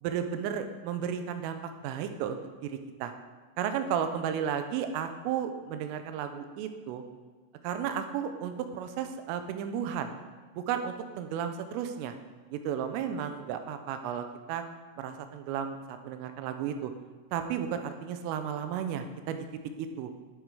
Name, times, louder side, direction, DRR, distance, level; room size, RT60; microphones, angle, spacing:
voice 1, 0.0-1.6 1.8-3.1 3.6-7.0 7.6-10.1 10.6-12.1 12.5-14.6 15.0-16.9 17.3-19.5 19.8-20.1, right 8 dB, 85° right, 8 dB, 3.2 m, -33 dB
11.5 x 7.6 x 4.8 m, 1.4 s
omnidirectional pair, 5.9 m